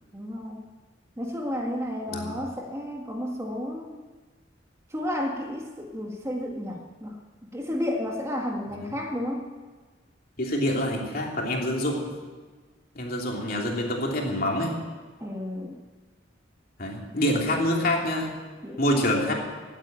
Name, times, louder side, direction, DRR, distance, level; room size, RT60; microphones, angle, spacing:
voice 1, 0.1-0.6 1.2-4.0 4.9-7.2 7.5-9.5 15.2-15.8 18.6-19.2, left 1 dB, 15° right, 1 dB, 1.7 m, -32 dB
voice 2, 10.4-12.0 12.9-14.8 16.8-18.3 18.8-19.3, left 1 dB, 50° left, 0 dB, 3.0 m, -26 dB
17.0 x 8.9 x 9.0 m, 1.4 s
head